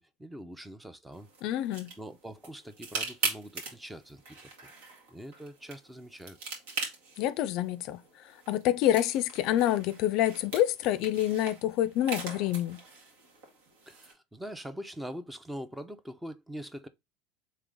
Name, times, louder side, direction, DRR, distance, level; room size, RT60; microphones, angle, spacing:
voice 1, 0.0-1.3 2.0-4.4 5.1-6.4 13.9-16.9, equal, 5° right, 0.5 m, -43 dB
sound 1, 1.1-14.1, right 4 dB, 80° right, 1.7 m, -41 dB
voice 2, 1.4-1.9 7.2-8.0 8.5-12.8, left 12 dB, 60° left, 0.3 m, -27 dB
3.7 x 3.3 x 3.6 m
supercardioid pair, 120°, 0 cm